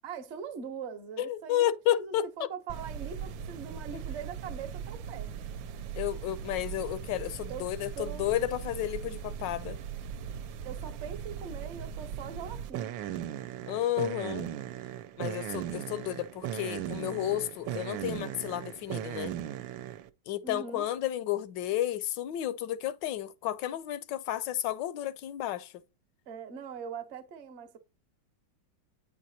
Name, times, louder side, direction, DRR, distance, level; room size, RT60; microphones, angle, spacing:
voice 1, 0.0-5.3 7.5-7.6 7.9-8.2 10.6-12.9 20.4-20.8 26.3-27.8, right 6 dB, 50° right, 0.8 m, -41 dB
voice 2, 1.2-2.3 3.9-4.0 5.9-9.8 13.7-14.5 15.2-19.4 20.3-25.8, left 12 dB, 75° left, 1.2 m, -32 dB
sound 1, 2.7-20.1, right 9 dB, 90° right, 1.3 m, -38 dB
9.1 x 4.6 x 2.7 m
omnidirectional pair, 2.0 m